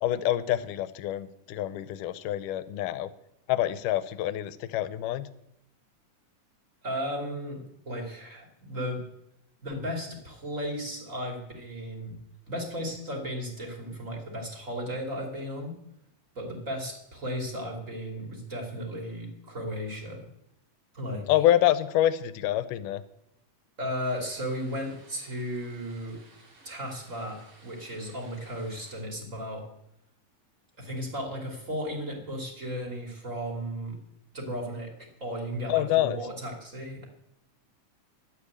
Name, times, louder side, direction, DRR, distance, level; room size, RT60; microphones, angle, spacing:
voice 1, 0.0-3.1 3.5-5.3 21.3-23.0 35.7-36.2, left 13 dB, 85° left, 14 dB, 2.3 m, -26 dB
voice 2, 6.8-9.0 9.6-12.1 12.5-15.8 16.3-20.2 20.9-21.2 23.8-26.2 26.6-29.6 30.8-34.0 34.3-37.1, equal, 25° right, 0 dB, 3.1 m, -35 dB
sound 1, 24.0-29.0, right 2 dB, 70° right, 4.1 m, -57 dB
12.0 x 8.5 x 8.7 m, 0.79 s
omnidirectional pair, 3.7 m